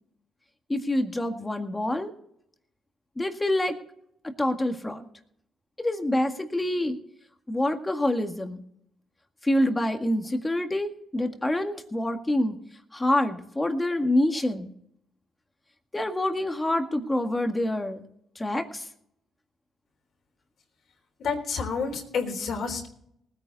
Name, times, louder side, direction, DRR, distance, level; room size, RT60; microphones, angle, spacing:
voice 1, 0.7-2.1 3.2-3.8 4.4-5.1 5.8-7.0 7.5-8.6 9.4-12.6 12.9-14.7 15.9-18.0 18.4-18.8, left 1 dB, 15° left, 6 dB, 1.8 m, -26 dB
voice 2, 21.2-22.9, left 5 dB, 65° left, 2 dB, 3.6 m, -29 dB
19.5 x 9.4 x 4.1 m, 0.70 s
cardioid pair, 90°, 0 cm